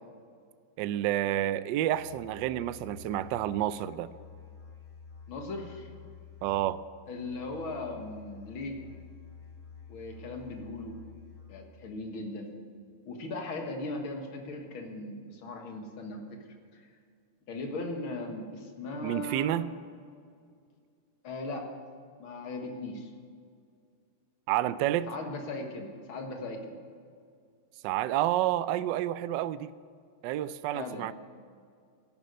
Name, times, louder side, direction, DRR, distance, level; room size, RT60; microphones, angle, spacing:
voice 1, 0.8-4.1 6.4-6.8 19.0-19.7 24.5-25.1 27.8-29.7 30.2-31.1, right 13 dB, 75° right, 15 dB, 1.1 m, -29 dB
Musical instrument, 1.9-11.9, left 6 dB, 5° left, 4.3 m, -50 dB
voice 2, 5.3-5.9 7.1-8.8 9.9-11.0 11.5-12.5 13.1-16.5 16.7-16.8 17.5-19.7 21.2-21.7 22.2-23.1 25.1-26.8 30.7-31.1, left 2 dB, 75° left, 3 dB, 2.5 m, -38 dB
14.5 x 12.0 x 6.6 m, 2.2 s
omnidirectional pair, 2.3 m